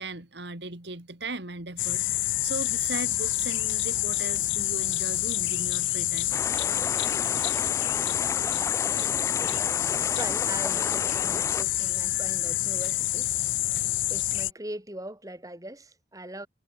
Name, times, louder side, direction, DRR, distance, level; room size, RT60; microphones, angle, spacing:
voice 1, 0.0-6.3, right 2 dB, 60° right, 3.0 m, -38 dB
sound 1, 1.8-14.5, left 16 dB, 75° left, 0.5 m, -27 dB
sound 2, 6.3-11.6, left 2 dB, 15° left, 2.1 m, -34 dB
voice 2, 9.8-13.4 14.1-16.5, right 1 dB, 20° right, 5.0 m, -40 dB
head